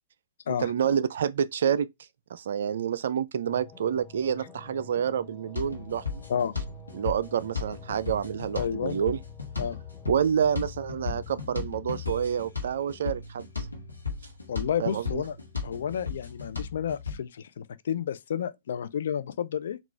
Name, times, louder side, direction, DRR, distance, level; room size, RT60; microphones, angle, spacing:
voice 1, 0.5-1.9 2.3-6.2 6.9-9.2 10.1-13.7 14.8-15.2, right 8 dB, 60° right, 0.3 m, -28 dB
sound 1, 3.4-11.5, left 4 dB, 5° left, 0.8 m, -49 dB
sound 2, 5.6-17.2, left 5 dB, 85° left, 0.9 m, -36 dB
voice 2, 8.5-9.0 9.6-9.8 14.5-15.3 15.6-19.8, left 8 dB, 60° left, 0.4 m, -31 dB
3.9 x 2.3 x 4.4 m
figure-of-eight pair, 110°, 0 cm